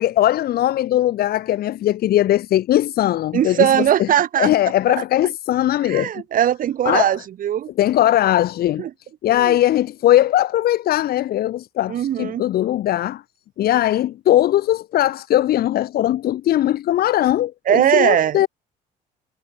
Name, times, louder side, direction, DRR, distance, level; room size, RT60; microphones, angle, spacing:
voice 1, 0.0-4.1 4.4-6.1 6.9-7.2 7.8-8.9 9.2-13.2 13.6-18.5, left 13 dB, 65° left, 2.1 m, -19 dB
voice 2, 3.3-4.5 4.9-5.0 5.8-7.7 8.8-8.9 9.3-9.6 11.9-12.4 17.7-18.4, right 10 dB, 55° right, 1.4 m, -19 dB
cardioid pair, 110°, 17 cm